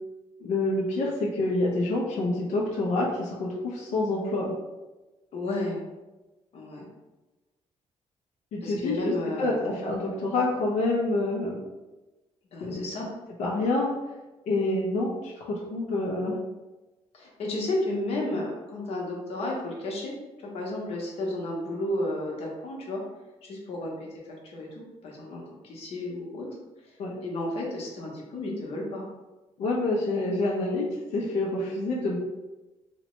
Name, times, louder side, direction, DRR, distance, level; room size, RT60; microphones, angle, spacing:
voice 1, 0.4-4.5 8.5-9.1 9.4-11.6 12.6-12.8 13.4-13.9 14.5-16.4 27.0-27.2 29.6-30.8 31.1-32.2, left 2 dB, 90° left, -2 dB, 0.5 m, -27 dB
voice 2, 5.3-5.8 6.5-6.9 8.6-9.7 12.5-13.1 17.1-20.1 20.5-23.0 23.4-26.5 27.2-29.0 30.7-30.8, left 1 dB, 60° left, -2 dB, 0.8 m, -32 dB
2.9 x 2.1 x 3.0 m, 1.1 s
cardioid pair, 160°, 11 cm